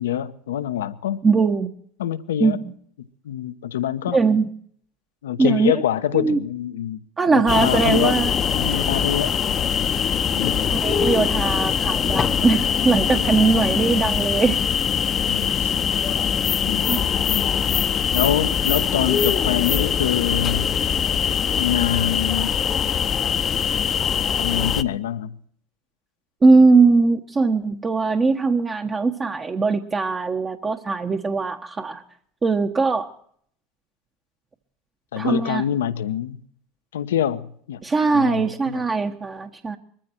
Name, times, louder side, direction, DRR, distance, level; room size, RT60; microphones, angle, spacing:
voice 1, 0.0-1.2 2.0-2.6 3.2-4.2 5.2-7.0 7.3-8.2 8.5-9.3 10.3-10.7 15.3-15.7 16.6-17.4 18.1-20.7 21.6-22.5 24.4-25.3 35.1-36.4 36.9-37.8 38.1-38.8, left 10 dB, 80° left, 1.0 m, -25 dB
voice 2, 1.2-1.7 2.4-2.6 4.1-4.4 5.4-5.7 6.1-6.4 7.2-8.3 10.7-14.6 16.9-17.0 26.4-32.0 32.4-33.1 35.2-35.6 37.8-39.8, right 4 dB, 25° right, 1.3 m, -20 dB
sound 1, 7.5-24.8, left 7 dB, 35° left, 0.9 m, -22 dB
21.5 x 14.5 x 4.5 m
hypercardioid pair, 80°, 0 cm